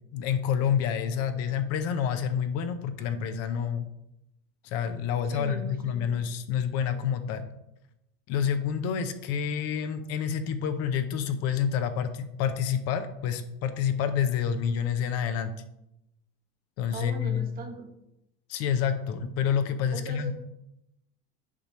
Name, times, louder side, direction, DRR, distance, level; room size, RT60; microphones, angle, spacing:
voice 1, 0.1-3.9 4.6-7.5 8.3-15.5 16.8-17.5 18.5-20.3, left 8 dB, 55° left, 9 dB, 0.7 m, -28 dB
voice 2, 5.3-6.2 16.9-17.9 19.9-20.3, right 4 dB, 30° right, 5 dB, 1.0 m, -39 dB
8.5 x 2.9 x 6.2 m, 0.85 s
cardioid pair, 150°, 30 cm